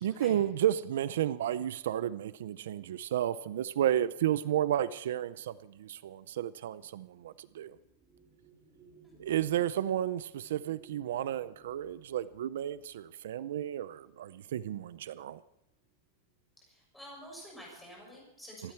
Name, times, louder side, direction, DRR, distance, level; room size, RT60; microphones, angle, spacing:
voice 1, 0.0-7.8 9.2-15.4 18.6-18.7, right 11 dB, 75° right, 0.5 m, -32 dB
sound 1, 5.7-14.2 15.1-15.3 15.6-16.2, right 5 dB, 20° right, 3.5 m, -62 dB
voice 2, 16.6-18.7, equal, 5° left, 6.8 m, -49 dB
26.0 x 12.0 x 4.5 m
supercardioid pair, 175°, 0 cm